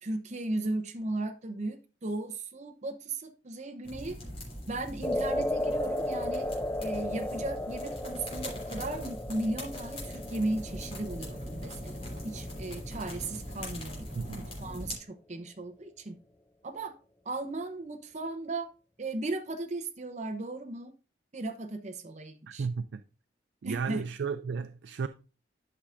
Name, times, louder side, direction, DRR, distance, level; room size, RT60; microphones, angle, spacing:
voice 1, 0.0-4.2 4.7-6.5 6.8-12.0 12.2-14.1 14.6-16.2 16.6-16.9 17.3-18.7 19.0-20.9 21.3-22.7 23.6-24.0, right 2 dB, 40° right, 0.7 m, -36 dB
sound 1, 3.8-15.0, left 1 dB, 30° left, 3.0 m, -41 dB
sound 2, 5.0-13.4, left 1 dB, 10° left, 0.4 m, -35 dB
voice 2, 14.1-14.5 22.5-23.0 23.6-25.1, right 5 dB, 65° right, 0.4 m, -34 dB
11.5 x 5.7 x 2.5 m
head